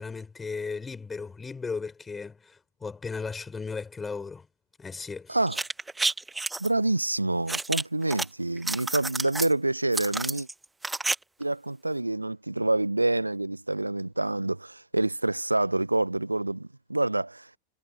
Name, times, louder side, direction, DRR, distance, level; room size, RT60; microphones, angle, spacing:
voice 1, 0.0-4.5 4.8-5.4, left 4 dB, 15° left, 6.8 m, -36 dB
voice 2, 5.3-5.6 6.6-10.5 11.4-17.6, right 2 dB, 85° right, 1.1 m, -27 dB
sound 1, 5.5-6.7 7.5-8.2 8.6-9.5 9.9-11.1 11.4-11.5, right 3 dB, 10° right, 1.6 m, -30 dB
figure-of-eight pair, 90°, 0 cm